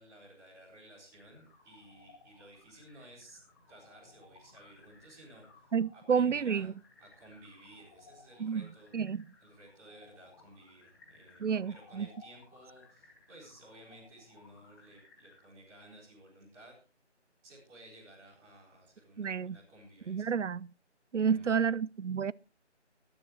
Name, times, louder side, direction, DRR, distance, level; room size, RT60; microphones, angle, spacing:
voice 1, 0.0-3.4 3.7-6.7 7.0-8.9 9.4-16.8 17.4-20.3 21.3-21.7, right 1 dB, 10° right, 4.4 m, -55 dB
sound 1, 1.1-15.5, left 4 dB, 20° left, 2.2 m, -61 dB
voice 2, 5.7-6.7 8.4-8.6 8.9-9.2 11.4-12.1 19.2-19.6 20.1-20.7 21.1-22.3, right 6 dB, 85° right, 0.6 m, -30 dB
19.5 x 12.5 x 3.2 m
figure-of-eight pair, 165°, 35 cm